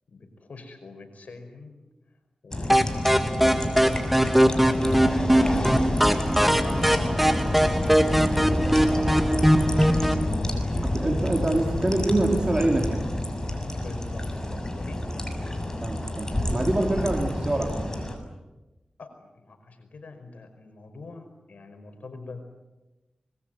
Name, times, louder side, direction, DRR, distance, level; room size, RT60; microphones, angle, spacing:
voice 1, 0.1-1.8 2.4-5.8 6.8-7.1 8.1-11.1 11.5-12.3 13.7-15.0 19.0-22.4, left 3 dB, 85° left, 6 dB, 5.1 m, -44 dB
sound 1, 2.5-18.2, left 1 dB, 25° left, 7.1 m, -28 dB
sound 2, 2.7-10.3, equal, 5° right, 2.1 m, -21 dB
voice 2, 10.9-13.1 15.8-17.9, right 2 dB, 35° right, 0 dB, 4.2 m, -25 dB
26.0 x 22.0 x 9.2 m, 1.1 s
cardioid pair, 55°, 2 cm